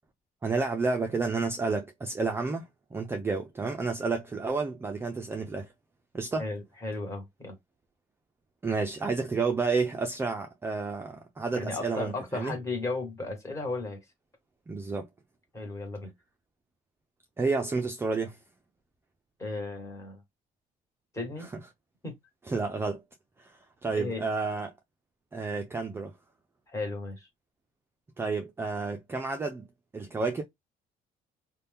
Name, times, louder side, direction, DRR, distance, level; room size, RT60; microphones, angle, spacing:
voice 1, 0.4-2.6 2.9-5.7 6.1-6.5 8.6-12.5 14.7-15.1 17.4-18.4 22.5-23.0 23.4-24.7 25.3-26.1 28.2-29.6 29.9-30.4, right 4 dB, 15° right, 0.4 m, -30 dB
voice 2, 6.4-7.6 11.5-14.0 15.5-16.1 19.4-20.2 21.1-21.5 22.0-22.1 23.9-24.2 26.7-27.3, left 3 dB, 20° left, 1.4 m, -35 dB
2.8 x 2.2 x 3.4 m
cardioid pair, 135°, 15 cm